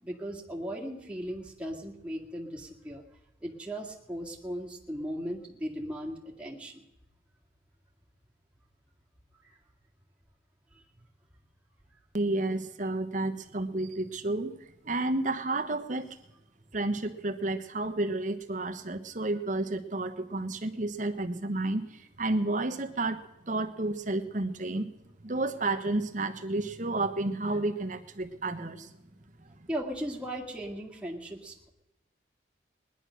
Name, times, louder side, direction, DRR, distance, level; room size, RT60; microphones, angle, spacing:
voice 1, 0.0-3.0 3.4-6.8 9.4-9.6 10.7-10.8 29.7-31.7, equal, 5° right, -3 dB, 2.0 m, -37 dB
voice 2, 12.1-14.5 14.8-16.2 16.7-24.9 25.2-28.9 29.6-29.7, right 2 dB, 40° right, 7 dB, 1.1 m, -31 dB
19.5 x 10.5 x 6.4 m, 0.90 s
head